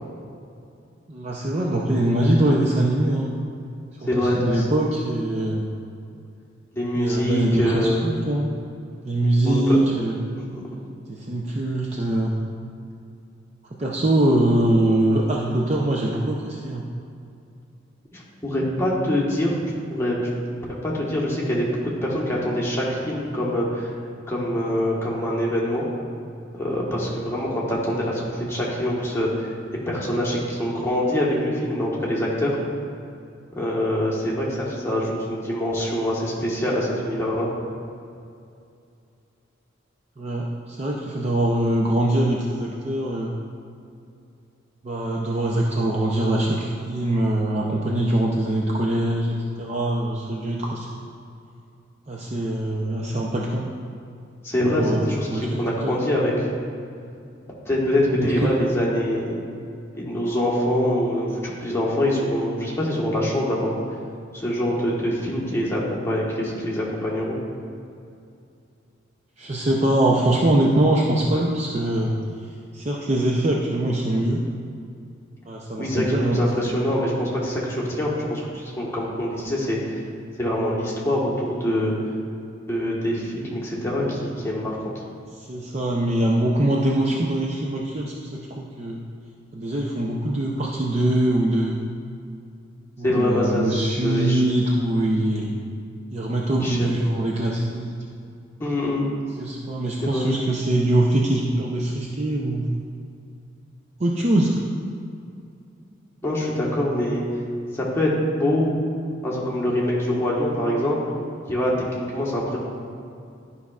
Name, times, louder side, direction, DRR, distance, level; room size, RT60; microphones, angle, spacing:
voice 1, 1.1-3.3 4.2-5.7 7.0-8.5 9.0-10.2 11.1-12.4 13.8-16.8 40.2-43.3 44.8-51.1 52.1-53.7 54.7-56.0 58.2-58.5 69.4-72.1 72.7-74.4 75.5-76.4 85.4-89.0 89.5-91.8 93.0-95.5 96.1-97.9 99.4-102.7 104.0-104.6, right 1 dB, 35° right, -2 dB, 0.5 m, -23 dB
voice 2, 4.0-4.7 6.7-8.1 9.4-9.8 10.3-10.6 18.1-20.3 20.8-23.9 24.3-25.9 26.5-29.5 29.9-32.5 33.5-37.5 54.4-56.5 57.6-59.4 59.9-63.8 64.3-67.4 75.8-80.0 80.4-81.9 82.7-85.0 93.0-93.7 94.0-94.4 96.6-96.9 98.6-99.1 100.0-100.3 106.2-107.2 107.7-108.7 109.2-111.0 111.5-112.6, left 1 dB, 15° left, -5 dB, 1.3 m, -24 dB
11.5 x 5.5 x 2.4 m, 2.5 s
head